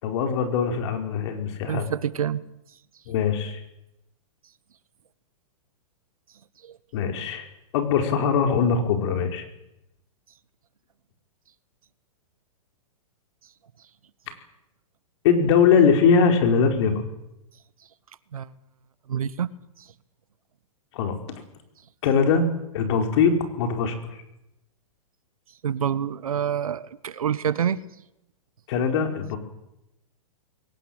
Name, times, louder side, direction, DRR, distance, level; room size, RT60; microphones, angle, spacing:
voice 1, 0.0-1.9 3.1-3.6 6.9-7.5 7.7-9.4 15.2-17.0 20.9-21.2 22.0-22.4 22.7-23.9 28.7-29.4, left 6 dB, 55° left, 5 dB, 4.8 m, -21 dB
voice 2, 1.7-2.4 6.6-6.8 18.3-18.5 19.1-19.5 19.8-19.9 25.6-27.8, right 8 dB, 85° right, 17 dB, 1.3 m, -27 dB
22.0 x 19.0 x 8.9 m, 0.86 s
hypercardioid pair, 130°, 18 cm